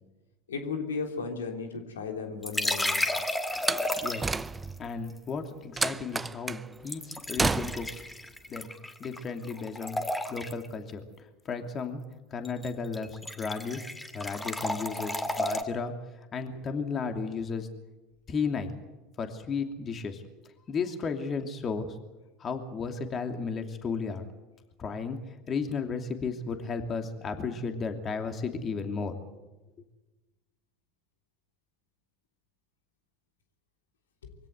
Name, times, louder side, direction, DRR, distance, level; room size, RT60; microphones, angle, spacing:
voice 1, 0.5-3.1 16.4-16.7 34.2-34.3, left 5 dB, 85° left, 4 dB, 3.3 m, -35 dB
sound 1, 2.4-4.5 6.9-9.2 9.5-10.7 12.4-12.7 12.9-15.6, left 1 dB, 10° left, 2.3 m, -32 dB
Slam, 3.5-4.9 5.8-6.7 7.4-8.0, right 3 dB, 15° right, 0.7 m, -30 dB
voice 2, 4.0-4.3 4.8-8.0 8.5-8.7 9.0-10.0 10.3-11.0 11.4-12.0 12.3-13.8 14.1-15.9 16.3-17.7 18.3-18.7 19.2-20.2 20.7-22.0 22.4-24.3 24.8-25.2 25.5-29.2, left 5 dB, 35° left, 6 dB, 2.8 m, -34 dB
24.0 x 16.5 x 8.1 m, 1.1 s
hypercardioid pair, 85°, 0 cm